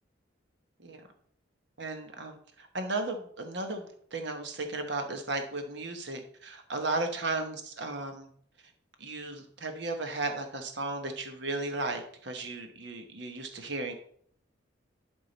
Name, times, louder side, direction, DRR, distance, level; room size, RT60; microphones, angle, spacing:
voice 1, 1.8-8.3 9.0-13.9, right 2 dB, 60° right, 5 dB, 1.1 m, -35 dB
11.0 x 3.7 x 4.0 m, 0.62 s
head